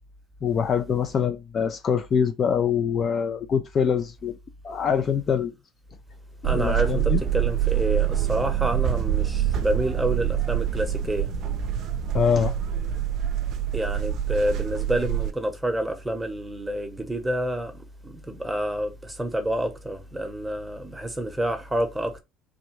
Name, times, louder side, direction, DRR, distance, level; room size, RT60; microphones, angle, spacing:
voice 1, 0.4-4.3 4.6-5.5 6.4-7.2 12.1-12.5, left 7 dB, 45° left, 0.4 m, -24 dB
voice 2, 6.4-11.3 13.7-17.7 18.0-22.2, right 1 dB, 10° right, 0.9 m, -28 dB
sound 1, 6.4-15.3, right 10 dB, 55° right, 0.5 m, -26 dB
3.5 x 2.2 x 3.0 m
hypercardioid pair, 70°, 0 cm